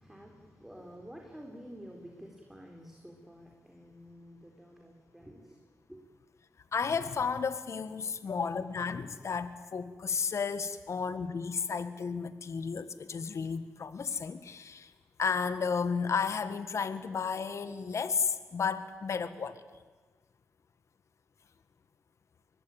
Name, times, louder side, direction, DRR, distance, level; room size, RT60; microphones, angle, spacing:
voice 1, 0.0-6.0, equal, 5° right, 1 dB, 4.2 m, -50 dB
voice 2, 6.7-14.9 15.2-19.6, left 5 dB, 60° left, 12 dB, 1.6 m, -33 dB
23.5 x 20.5 x 9.2 m, 1.3 s
cardioid pair, 65°, 6 cm